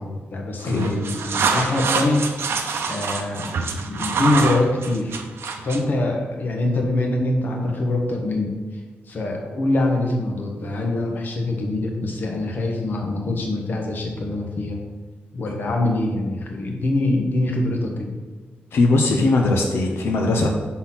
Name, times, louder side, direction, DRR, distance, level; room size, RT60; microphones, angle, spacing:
voice 1, 0.0-2.2 2.9-3.5 3.8-5.2 5.6-8.6 9.1-14.8 15.3-18.2, left 2 dB, 50° left, 1 dB, 1.1 m, -24 dB
voice 2, 0.6-1.0 18.7-20.5, left 2 dB, 90° left, 1 dB, 0.8 m, -19 dB
sound 1, 0.6-5.9, right 5 dB, 80° right, 0.6 m, -26 dB
5.9 x 4.1 x 5.8 m, 1.4 s
wide cardioid pair, 170°, 4 cm